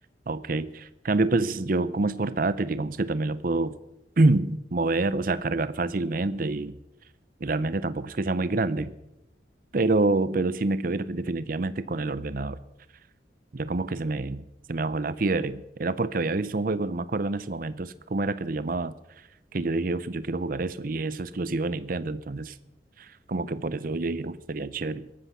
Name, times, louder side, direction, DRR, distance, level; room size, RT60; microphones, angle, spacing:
voice 1, 0.3-3.7 4.2-6.8 7.4-8.9 9.7-12.6 13.5-18.9 19.5-22.5 23.0-25.1, right 2 dB, 50° right, 15 dB, 0.7 m, -27 dB
17.0 x 13.5 x 5.8 m, 0.90 s
head